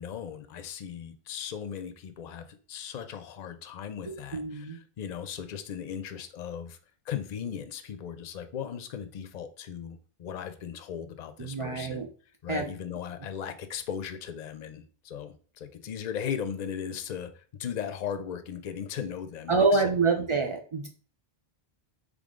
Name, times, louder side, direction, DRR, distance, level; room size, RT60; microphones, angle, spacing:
voice 1, 0.0-6.8 7.1-12.1 12.4-20.2, left 8 dB, 50° left, 9 dB, 0.6 m, -37 dB
voice 2, 4.1-4.8 11.4-12.1 12.5-12.7 19.5-20.9, right 4 dB, 55° right, 4 dB, 0.3 m, -26 dB
3.8 x 3.5 x 3.6 m, 0.41 s
omnidirectional pair, 1.1 m